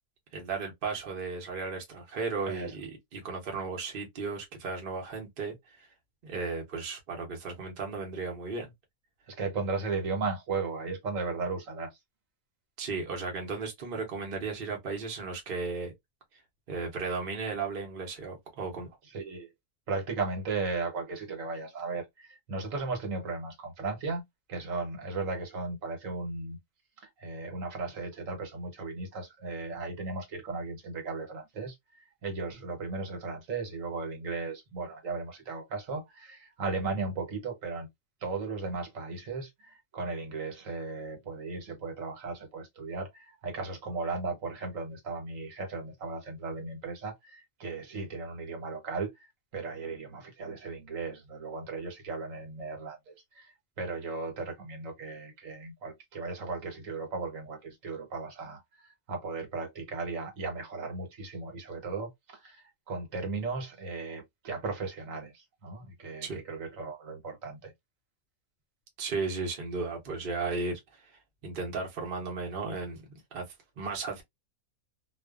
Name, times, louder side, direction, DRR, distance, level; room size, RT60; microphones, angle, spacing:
voice 1, 0.3-5.9 6.2-8.7 12.8-15.9 16.7-18.9 66.2-66.4 69.0-71.1 71.4-73.0 73.3-73.4 73.8-74.2, right 4 dB, 45° right, 0.8 m, -35 dB
voice 2, 9.3-12.0 19.1-19.5 19.9-24.2 24.5-26.6 27.0-31.7 32.2-37.9 38.2-67.7, right 4 dB, 65° right, 1.2 m, -36 dB
2.5 x 2.3 x 2.2 m
omnidirectional pair, 1.5 m